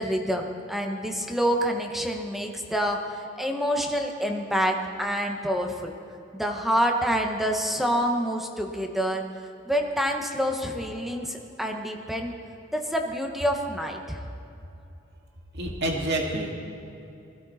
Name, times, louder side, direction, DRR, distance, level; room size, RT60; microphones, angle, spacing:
voice 1, 0.0-5.9 6.3-9.2 9.7-12.3 12.7-14.2, equal, ahead, 2 dB, 1.3 m, -27 dB
voice 2, 15.5-16.7, right 1 dB, 60° right, 0 dB, 2.1 m, -28 dB
21.0 x 16.0 x 4.3 m, 2.8 s
head